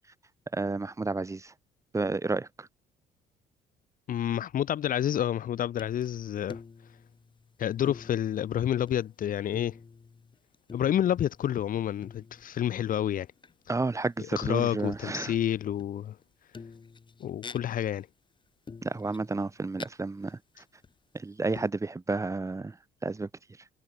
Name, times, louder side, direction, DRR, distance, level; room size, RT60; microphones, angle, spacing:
voice 1, 0.5-1.5 1.9-2.7 13.7-15.3 18.8-20.4 21.1-22.7 23.0-23.3, right 3 dB, 20° right, 4.0 m, -31 dB
voice 2, 4.1-6.6 7.6-9.7 10.7-13.3 14.2-16.2 17.2-18.1, left 10 dB, 55° left, 1.9 m, -29 dB
sound 1, 5.8-6.1 6.4-7.6 7.8-9.1 9.4-11.5 12.0-12.7 13.4-13.5 14.6-15.3 15.8-16.2 16.5-18.0 18.7-19.9 20.3-20.4 20.8-21.2 21.6-21.7, left 5 dB, 30° left, 7.9 m, -47 dB
cardioid pair, 110°, 17 cm